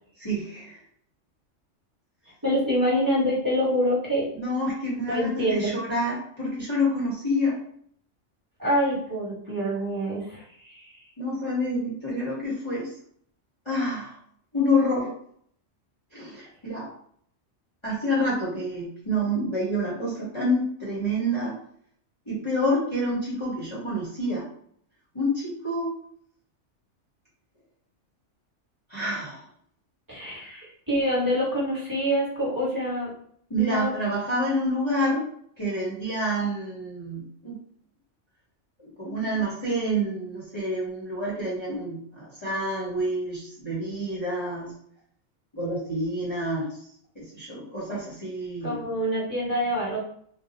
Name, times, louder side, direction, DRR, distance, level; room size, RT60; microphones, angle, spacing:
voice 1, 0.2-0.8 4.3-7.6 11.2-12.9 13.6-14.1 14.5-15.1 16.1-16.9 17.8-21.6 22.3-24.4 25.1-25.9 28.9-29.4 30.3-30.7 33.5-35.3 35.6-37.6 38.8-44.7 45.5-46.7 47.1-48.8, equal, 25° left, -8 dB, 0.8 m, -28 dB
voice 2, 2.4-4.3 5.1-5.7 8.6-10.9 30.1-30.5 30.9-33.1 33.5-33.9 48.6-50.0, equal, 15° right, -7 dB, 1.3 m, -26 dB
2.6 x 2.2 x 4.0 m, 0.64 s
omnidirectional pair, 1.3 m